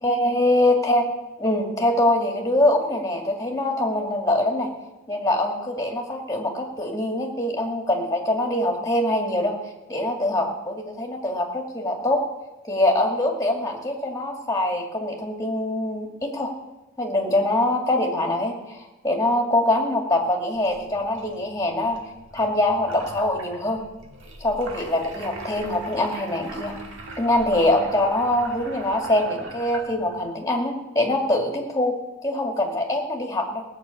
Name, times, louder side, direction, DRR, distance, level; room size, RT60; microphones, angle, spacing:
voice 1, 0.0-1.0 1.4-4.7 5.1-9.6 9.9-12.2 12.7-16.5 17.0-22.0 22.3-23.8 24.4-26.7 27.2-31.9 32.2-33.6, left 1 dB, 15° left, 1 dB, 2.2 m, -23 dB
sound 1, 20.5-30.3, right 2 dB, 55° right, 2.0 m, -41 dB
18.5 x 6.5 x 8.4 m, 1.1 s
head